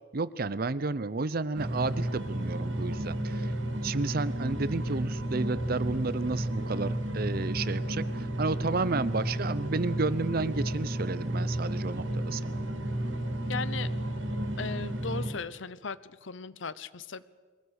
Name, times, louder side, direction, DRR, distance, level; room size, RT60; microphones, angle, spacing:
voice 1, 0.1-3.5 3.8-12.6, right 3 dB, 50° right, 17 dB, 0.7 m, -32 dB
sound 1, 1.6-15.3, right 1 dB, 75° right, 2.9 m, -32 dB
voice 2, 13.5-13.9 14.6-17.2, left 5 dB, 75° left, 17 dB, 0.8 m, -37 dB
22.5 x 17.5 x 8.1 m, 1.5 s
head